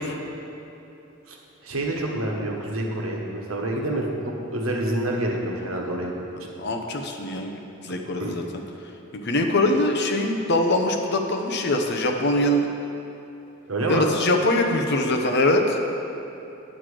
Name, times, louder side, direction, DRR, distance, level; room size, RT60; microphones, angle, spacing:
voice 1, 1.6-4.0 4.5-6.1 8.2-8.4 13.7-14.1, right 1 dB, 75° right, -1 dB, 1.4 m, -27 dB
voice 2, 6.6-8.4 9.1-12.7 13.9-15.8, left 1 dB, 50° left, 3 dB, 0.8 m, -23 dB
9.4 x 7.6 x 4.9 m, 2.9 s
head